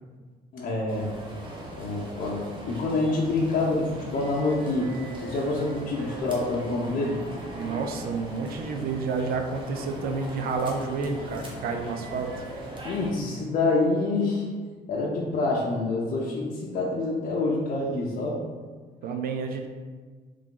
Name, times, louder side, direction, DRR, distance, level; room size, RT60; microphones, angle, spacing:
voice 1, 0.5-1.1 1.8-4.9 5.2-7.2 12.8-14.5 14.9-18.4, left 2 dB, 50° left, -5 dB, 0.7 m, -27 dB
sound 1, 0.9-13.1, right 1 dB, 30° right, 0.9 m, -39 dB
voice 2, 7.5-12.4 19.0-19.7, right 4 dB, 60° right, 5 dB, 0.6 m, -30 dB
3.6 x 3.3 x 3.7 m, 1.5 s
cardioid pair, 110°, 17 cm